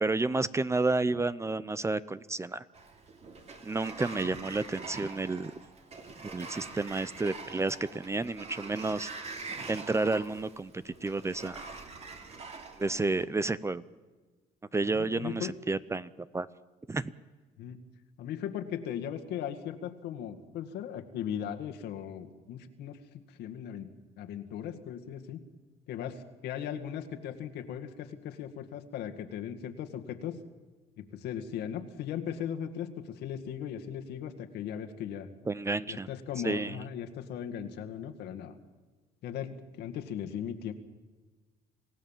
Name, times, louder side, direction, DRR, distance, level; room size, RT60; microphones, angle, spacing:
voice 1, 0.0-2.6 3.6-5.5 6.3-9.1 9.7-11.7 12.8-13.8 14.7-16.5 16.9-17.1 35.5-36.1 36.4-36.8, right 3 dB, 15° right, 17 dB, 0.6 m, -31 dB
Sliding door, 2.7-13.3, right 4 dB, 40° right, 2.8 m, -44 dB
voice 2, 14.9-15.6 17.6-17.8 18.2-23.0 23.3-23.9 24.2-25.4 25.9-30.4 31.0-35.3 35.9-38.5 39.2-40.7, left 9 dB, 80° left, 5 dB, 2.0 m, -38 dB
27.0 x 16.5 x 7.4 m, 1.3 s
cardioid pair, 110°, 17 cm